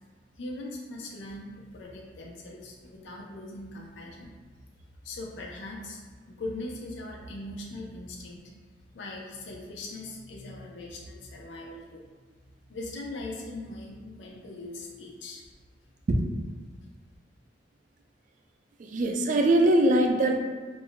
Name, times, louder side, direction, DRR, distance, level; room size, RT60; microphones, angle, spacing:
voice 1, 0.4-4.3 5.0-6.0 6.3-8.5 8.9-12.0 12.7-15.4, left 2 dB, 90° left, -1 dB, 0.4 m, -40 dB
voice 2, 18.8-20.4, right 1 dB, 45° right, 3 dB, 0.3 m, -22 dB
2.5 x 2.1 x 3.7 m, 1.5 s
head